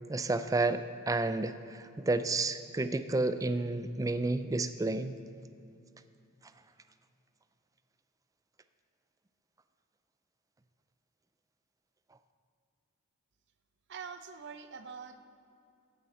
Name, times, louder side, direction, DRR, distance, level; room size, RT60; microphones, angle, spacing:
voice 1, 0.1-5.2, right 2 dB, 15° right, 11 dB, 0.4 m, -31 dB
voice 2, 13.9-15.2, right 6 dB, 55° right, 9 dB, 0.6 m, -44 dB
15.0 x 9.2 x 4.2 m, 2.6 s
head